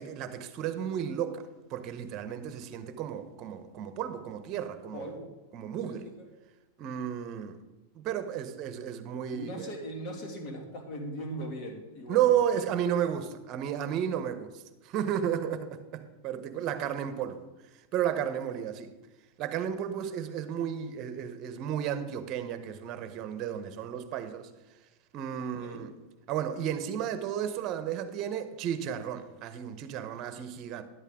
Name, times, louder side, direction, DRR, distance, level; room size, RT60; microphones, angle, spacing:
voice 1, 0.0-1.4 1.7-5.1 5.5-6.1 6.8-7.6 7.9-9.7 12.1-17.4 17.7-18.9 19.4-24.5 25.1-25.9 26.3-30.8, right 9 dB, 45° right, 1.0 m, -33 dB
voice 2, 4.9-5.3 5.8-6.3 9.3-12.3 25.4-25.9, equal, 45° left, 2.3 m, -40 dB
11.0 x 8.2 x 3.7 m
hypercardioid pair, 115°, 0 cm